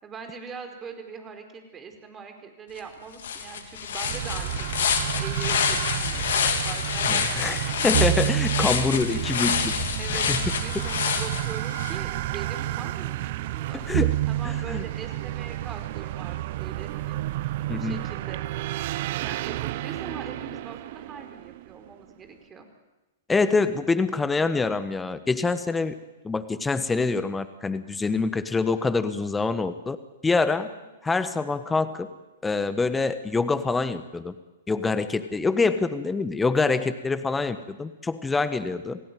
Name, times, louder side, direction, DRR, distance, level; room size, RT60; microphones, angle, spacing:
voice 1, 0.0-7.6 9.1-9.5 10.0-10.3 10.6-13.9 14.3-18.4 19.1-22.7 30.6-30.9, right 5 dB, 20° right, 6 dB, 4.7 m, -42 dB
Walk - Leafs, 2.8-2.9 3.2-12.0, left 6 dB, 65° left, 3.1 m, -27 dB
sound 1, 4.0-21.9, right 16 dB, 50° right, 0.9 m, -30 dB
voice 2, 7.1-7.6 7.8-9.5 10.1-10.4 13.9-14.1 14.4-14.8 17.7-18.0 23.3-26.0 26.2-30.0 30.2-30.7 31.0-32.1 32.4-34.3 34.7-39.0, left 4 dB, 10° left, 12 dB, 1.4 m, -25 dB
28.5 x 17.0 x 9.3 m, 1.1 s
hypercardioid pair, 110°, 0 cm